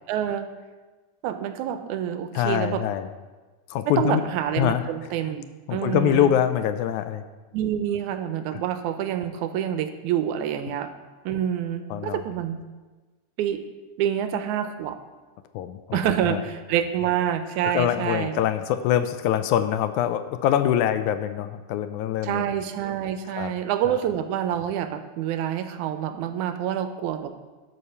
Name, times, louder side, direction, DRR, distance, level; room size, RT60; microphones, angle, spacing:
voice 1, 0.1-0.5 1.2-2.8 3.9-5.5 5.7-6.3 7.5-10.9 11.3-12.6 13.4-13.6 14.0-15.0 15.9-18.4 22.2-27.4, right 10 dB, 80° right, 9 dB, 2.0 m, -27 dB
voice 2, 2.3-3.1 3.7-4.2 4.6-5.1 5.7-7.2 8.5-8.6 10.7-10.8 11.9-12.2 15.5-16.4 17.6-22.4 23.3-23.5 23.9-24.0, left 10 dB, 80° left, 10 dB, 1.9 m, -24 dB
11.0 x 5.6 x 6.7 m, 1.3 s
omnidirectional pair, 3.6 m